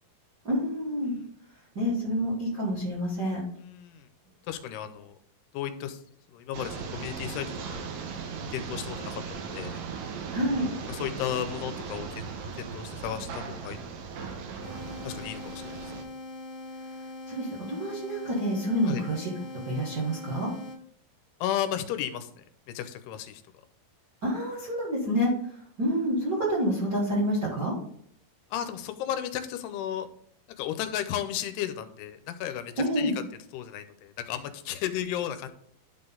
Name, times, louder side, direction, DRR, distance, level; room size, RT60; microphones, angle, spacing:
voice 1, 0.4-1.1 1.7-3.4 10.3-10.6 17.3-19.3 19.6-20.5 24.2-27.7 32.8-33.1, equal, 55° right, -7 dB, 1.1 m, -28 dB
voice 2, 3.6-4.1 4.5-5.2 5.5-6.0 6.3-7.9 8.5-9.8 10.9-12.3 12.6-13.8 15.0-15.8 18.9-19.0 21.4-22.4 22.7-23.4 28.5-30.1 30.6-33.1 33.5-35.5, left 10 dB, 85° left, 9 dB, 2.6 m, -34 dB
sound 1, 6.5-16.0, right 5 dB, 75° right, 2.3 m, -38 dB
sound 2, 14.6-20.8, left 2 dB, 45° left, 2.5 m, -42 dB
11.5 x 3.9 x 3.8 m, 0.64 s
omnidirectional pair, 4.7 m